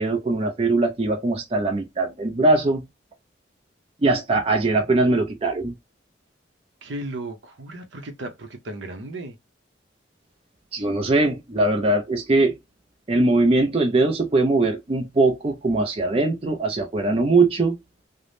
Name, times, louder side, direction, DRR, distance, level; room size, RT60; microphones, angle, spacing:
voice 1, 0.0-2.8 4.0-5.7 10.7-12.5 13.1-17.8, right 2 dB, 30° right, 0.4 m, -21 dB
voice 2, 6.8-9.4, right 1 dB, 70° right, 0.7 m, -35 dB
3.3 x 2.0 x 2.5 m
head